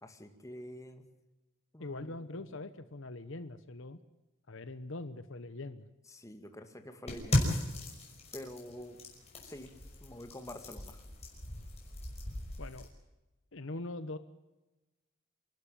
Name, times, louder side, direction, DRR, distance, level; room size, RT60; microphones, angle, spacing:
voice 1, 0.0-1.0 1.7-2.5 6.1-7.6 8.3-9.0 9.4-9.7 10.0-11.0, left 1 dB, 15° left, 6 dB, 2.1 m, -47 dB
voice 2, 1.8-4.0 4.5-5.9 12.6-12.9 13.5-14.2, left 2 dB, 65° left, 12 dB, 1.0 m, -42 dB
sound 1, 7.1-12.9, left 1 dB, 30° left, 5.8 m, -36 dB
28.0 x 12.0 x 9.0 m, 1.0 s
head